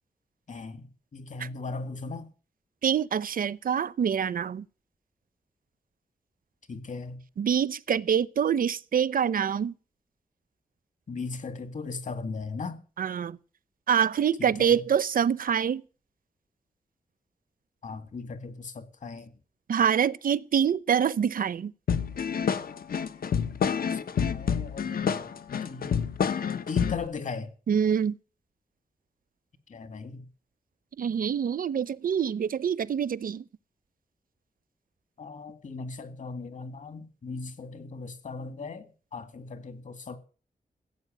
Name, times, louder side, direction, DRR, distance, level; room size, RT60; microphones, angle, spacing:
voice 1, 0.5-2.3 6.7-7.2 11.1-12.8 14.4-14.8 17.8-19.3 23.9-24.0 24.3-25.3 25.6-26.1 26.7-27.5 29.7-30.3 35.2-40.2, left 4 dB, 55° left, 2.1 m, -38 dB
voice 2, 2.8-4.6 7.4-9.7 13.0-13.4 13.9-15.8 19.7-21.7 27.7-28.2 31.0-33.4, right 8 dB, 70° right, 0.7 m, -25 dB
sound 1, 21.9-27.1, left 7 dB, 80° left, 1.0 m, -28 dB
16.0 x 8.1 x 9.2 m
wide cardioid pair, 120°, 15 cm